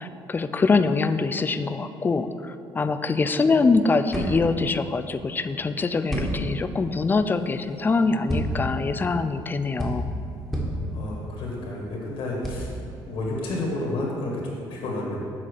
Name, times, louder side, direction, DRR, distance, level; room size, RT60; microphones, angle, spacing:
voice 1, 0.0-10.1, left 4 dB, 20° left, 10 dB, 0.4 m, -24 dB
sound 1, 3.6-14.1, equal, ahead, 1.6 m, -32 dB
voice 2, 10.9-12.7 13.0-15.2, left 2 dB, 75° left, -2 dB, 1.9 m, -30 dB
7.4 x 4.2 x 6.6 m, 2.6 s
cardioid pair, 105°, 9 cm